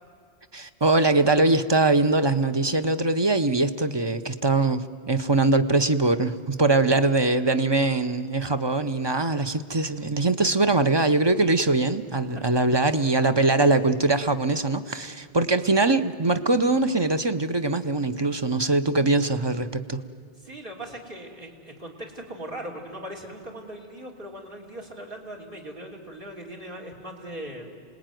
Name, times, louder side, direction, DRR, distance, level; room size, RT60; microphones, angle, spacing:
voice 1, 0.5-20.0, right 2 dB, 30° right, 10 dB, 0.7 m, -22 dB
voice 2, 20.4-27.7, right 1 dB, 55° right, 3 dB, 3.3 m, -39 dB
27.5 x 19.5 x 9.2 m, 2.3 s
omnidirectional pair, 1.1 m